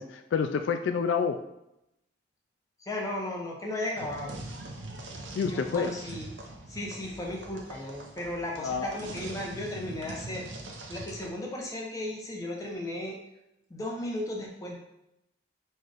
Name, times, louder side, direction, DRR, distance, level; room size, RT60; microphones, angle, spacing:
voice 1, 0.0-1.4 5.4-5.9 8.6-8.9, left 6 dB, 75° left, 7 dB, 0.3 m, -28 dB
voice 2, 2.8-4.5 5.3-6.4 6.7-10.5 10.9-13.2 13.7-14.8, left 1 dB, 20° left, -2 dB, 0.9 m, -35 dB
sound 1, 4.0-11.3, right 2 dB, 70° right, 0.8 m, -43 dB
4.4 x 2.5 x 4.9 m, 0.87 s
head